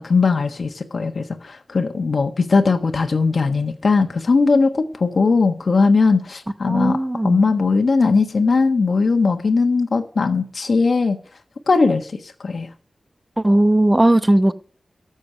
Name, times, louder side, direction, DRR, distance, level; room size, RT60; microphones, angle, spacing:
voice 1, 0.0-11.2 11.7-12.7, left 4 dB, 60° left, 1.4 m, -19 dB
voice 2, 6.7-7.4 13.4-14.5, right 1 dB, 15° right, 0.9 m, -17 dB
13.5 x 7.3 x 8.8 m
wide cardioid pair, 95°, 0 cm